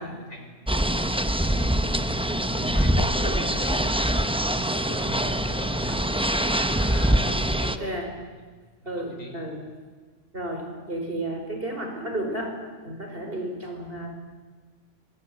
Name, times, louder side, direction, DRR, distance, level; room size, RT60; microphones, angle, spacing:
voice 1, 0.0-1.4 1.8-4.3 4.6-8.0 8.8-9.4, left 1 dB, 85° left, 3 dB, 5.7 m, -41 dB
sound 1, 0.7-7.8, right 1 dB, 5° right, 0.7 m, -24 dB
voice 2, 7.6-8.1 8.8-9.6 10.3-12.5 12.8-14.1, right 1 dB, 45° right, 3 dB, 5.3 m, -32 dB
26.0 x 23.0 x 9.1 m, 1.4 s
omnidirectional pair, 1.3 m